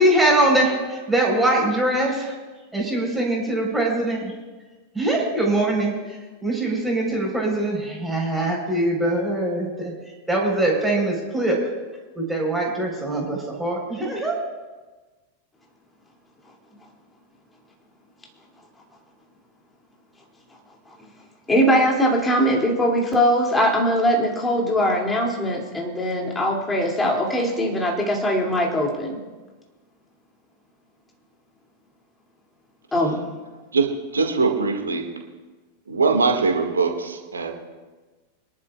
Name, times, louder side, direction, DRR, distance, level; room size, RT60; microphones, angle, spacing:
voice 1, 0.0-0.7 1.1-2.3 2.7-4.3 4.9-6.2 6.4-9.9 10.3-11.6 12.2-14.4, right 1 dB, 5° right, -2 dB, 4.1 m, -22 dB
voice 2, 21.5-29.2 32.9-33.2, equal, 10° left, -1 dB, 2.5 m, -21 dB
voice 3, 33.7-35.1 35.9-37.5, right 4 dB, 75° right, 3 dB, 1.8 m, -22 dB
24.5 x 11.5 x 2.4 m, 1.3 s
figure-of-eight pair, 90°, 0 cm